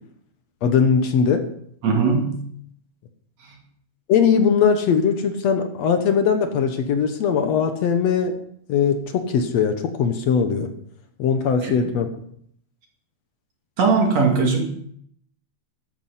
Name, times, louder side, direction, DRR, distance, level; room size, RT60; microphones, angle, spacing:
voice 1, 0.6-1.5 4.1-8.4 8.7-10.7 11.2-12.1, left 6 dB, 65° left, 7 dB, 2.2 m, -20 dB
voice 2, 1.8-2.4 3.4-3.6 11.6-12.0 13.8-14.6, right 4 dB, 60° right, 1 dB, 3.4 m, -20 dB
12.5 x 9.6 x 5.7 m, 0.66 s
omnidirectional pair, 3.4 m